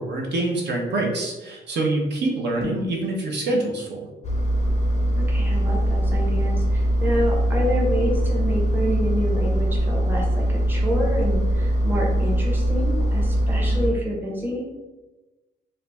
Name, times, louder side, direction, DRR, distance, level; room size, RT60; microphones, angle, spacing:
voice 1, 0.0-4.0, right 2 dB, 60° right, -1 dB, 0.6 m, -25 dB
sound 1, 2.5-3.0, left 2 dB, 30° right, 1.0 m, -33 dB
Engine, 4.2-13.9, equal, 35° left, 0.5 m, -22 dB
voice 2, 5.2-14.7, equal, 10° right, -3 dB, 0.7 m, -28 dB
2.4 x 2.0 x 3.2 m, 1.1 s
cardioid pair, 90°, 20 cm